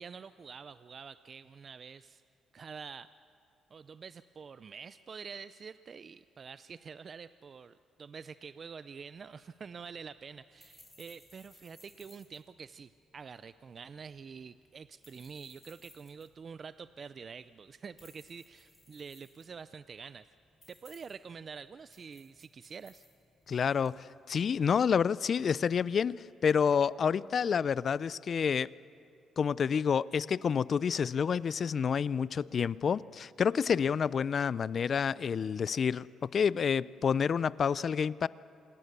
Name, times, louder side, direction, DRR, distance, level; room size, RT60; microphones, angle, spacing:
voice 1, 0.0-2.2 2.5-3.1 3.7-20.3 20.7-23.1, right 6 dB, 45° right, 14 dB, 0.5 m, -47 dB
sound 1, 9.0-24.0, left 1 dB, 10° left, 5.7 m, -62 dB
voice 2, 23.5-28.7 29.4-38.3, left 7 dB, 50° left, 20 dB, 0.4 m, -29 dB
27.0 x 18.5 x 6.8 m, 2.6 s
cardioid pair, 90°, 0 cm